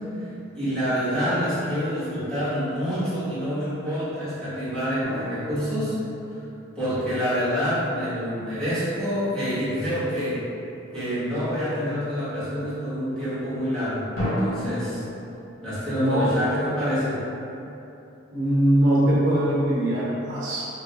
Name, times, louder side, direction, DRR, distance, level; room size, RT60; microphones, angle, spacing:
voice 1, 0.5-6.0 6.3-6.4 6.7-10.4 10.9-15.0 15.6-17.2, equal, 5° left, -15 dB, 1.2 m, -27 dB
sound 1, 5.0-7.1 14.2-14.8, equal, 90° left, 1.1 m, -31 dB
voice 2, 15.9-16.3 18.3-20.6, right 1 dB, 75° right, -9 dB, 0.9 m, -21 dB
3.4 x 2.3 x 2.9 m, 2.9 s
head